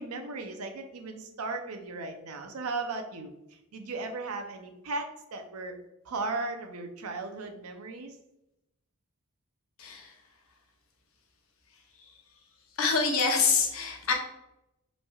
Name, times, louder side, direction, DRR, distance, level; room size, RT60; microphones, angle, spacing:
voice 1, 0.0-3.3 3.7-5.7 6.1-8.1, right 3 dB, 75° right, 5 dB, 0.6 m, -36 dB
voice 2, 9.8-10.1 12.0-12.1 12.8-14.1, left 5 dB, 65° left, 2 dB, 0.8 m, -26 dB
5.2 x 3.3 x 2.3 m, 0.87 s
head